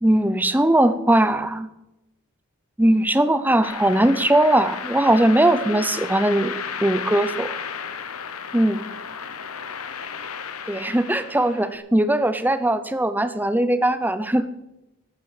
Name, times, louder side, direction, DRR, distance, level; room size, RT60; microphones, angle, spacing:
voice 1, 0.0-1.7 2.8-7.5 8.5-8.8 10.7-14.5, right 1 dB, 10° right, 12 dB, 0.7 m, -20 dB
sound 1, 3.6-11.7, left 7 dB, 80° left, 1.0 m, -33 dB
13.0 x 11.5 x 6.6 m, 0.94 s
head